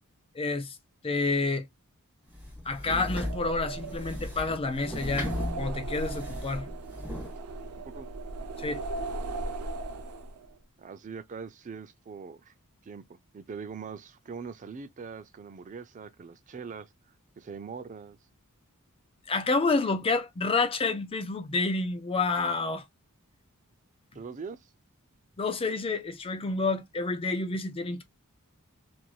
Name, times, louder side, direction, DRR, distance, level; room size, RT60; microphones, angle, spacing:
voice 1, 0.3-0.8 1.0-1.7 2.7-5.3 5.6-6.7 8.6-8.8 19.3-22.9 25.4-28.0, left 3 dB, 25° left, 0.4 m, -29 dB
sound 1, 2.3-7.4, left 1 dB, 5° right, 1.2 m, -37 dB
sound 2, 2.9-10.5, right 2 dB, 85° right, 0.6 m, -37 dB
voice 2, 7.8-8.1 10.8-12.5 12.8-16.9 17.4-18.2 24.1-24.7, right 5 dB, 35° right, 0.4 m, -42 dB
3.0 x 2.6 x 2.3 m
head